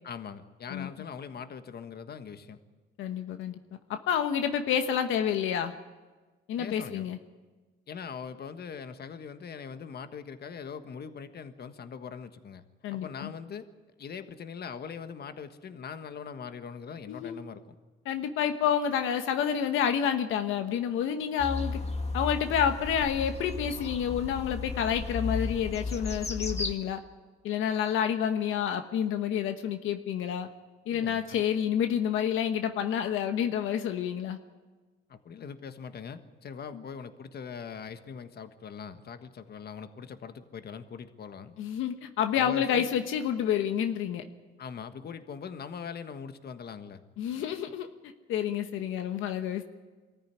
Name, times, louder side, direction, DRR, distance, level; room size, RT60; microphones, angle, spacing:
voice 1, 0.0-2.6 6.6-7.1 7.9-12.6 12.9-13.7 14.0-17.6 30.9-31.4 35.1-41.5 42.3-42.9 44.6-47.0, left 6 dB, 55° left, 9 dB, 1.5 m, -41 dB
voice 2, 3.0-3.6 3.9-5.7 6.5-7.2 12.8-13.3 17.1-17.4 18.0-21.8 22.1-27.0 27.4-30.5 30.9-34.4 41.6-44.2 47.2-47.9 48.3-49.6, left 8 dB, 90° left, 8 dB, 1.2 m, -29 dB
sound 1, 21.4-26.7, left 3 dB, 35° left, 2.0 m, -34 dB
23.5 x 14.0 x 9.8 m, 1.3 s
cardioid pair, 90°, 20 cm